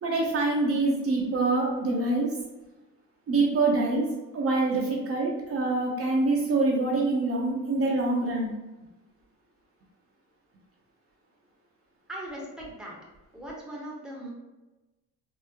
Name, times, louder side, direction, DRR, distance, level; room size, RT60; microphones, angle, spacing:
voice 1, 0.0-2.3 3.3-8.5, right 3 dB, 50° right, -2 dB, 0.7 m, -25 dB
voice 2, 12.1-13.0 13.3-14.3, right 1 dB, ahead, -3 dB, 0.9 m, -39 dB
3.6 x 2.0 x 2.8 m, 1.1 s
cardioid pair, 90°, 30 cm